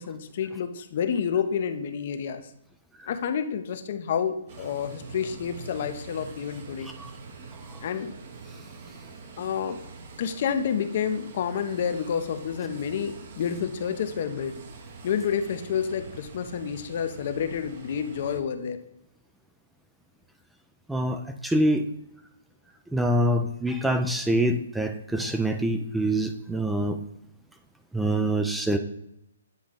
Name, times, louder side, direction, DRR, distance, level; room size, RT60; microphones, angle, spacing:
voice 1, 0.0-2.4 3.1-6.9 7.8-8.1 9.4-9.8 10.2-14.5 15.0-18.8, left 7 dB, 50° left, 10 dB, 0.6 m, -29 dB
sound 1, 4.5-18.4, right 4 dB, 50° right, 1.0 m, -44 dB
voice 2, 20.9-21.8 22.9-27.0 27.9-28.8, right 1 dB, 5° right, 6 dB, 0.3 m, -25 dB
8.9 x 3.7 x 3.7 m, 0.80 s
hypercardioid pair, 150°, 0 cm